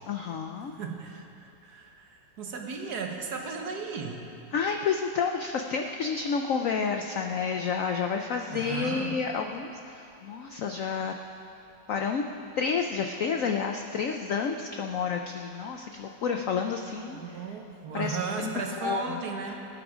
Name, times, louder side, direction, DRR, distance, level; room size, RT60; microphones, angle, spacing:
voice 1, 0.1-0.7 4.5-11.1 11.9-12.2 12.6-17.2 17.9-18.5 18.8-19.2, left 6 dB, 75° left, 4 dB, 0.7 m, -30 dB
voice 2, 0.7-4.3 8.5-9.2 17.1-19.6, right 4 dB, 60° right, 2 dB, 1.5 m, -35 dB
19.0 x 8.9 x 5.0 m, 2.8 s
omnidirectional pair, 2.1 m